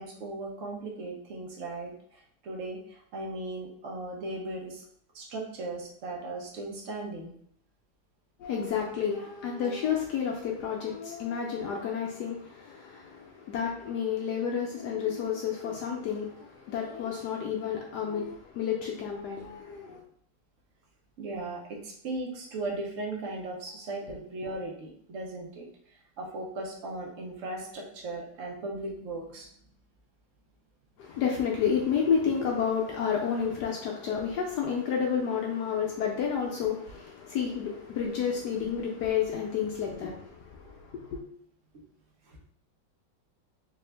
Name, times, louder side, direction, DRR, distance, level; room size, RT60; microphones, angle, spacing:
voice 1, 0.0-4.8 5.1-7.3 21.2-25.6 26.2-29.5 42.3-42.4, right 2 dB, 55° right, -1 dB, 1.0 m, -37 dB
voice 2, 8.4-20.0 31.0-41.2, left 7 dB, 70° left, -1 dB, 1.0 m, -30 dB
3.6 x 2.5 x 3.3 m, 0.65 s
omnidirectional pair, 2.1 m